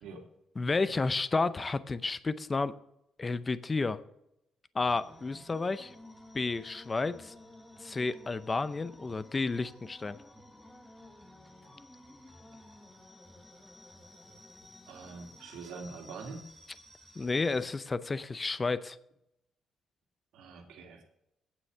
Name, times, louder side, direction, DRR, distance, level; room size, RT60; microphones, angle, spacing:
voice 1, 0.0-0.3 14.9-16.5 20.3-21.0, right 4 dB, 85° right, 3 dB, 2.1 m, -44 dB
voice 2, 0.6-2.7 3.2-4.0 4.7-5.9 6.3-7.3 7.8-10.2 17.2-19.0, left 3 dB, 30° left, 15 dB, 0.6 m, -31 dB
sound 1, 4.8-17.7, left 1 dB, 10° left, 1.5 m, -54 dB
9.2 x 7.9 x 6.7 m, 0.82 s
cardioid pair, 90°, 0 cm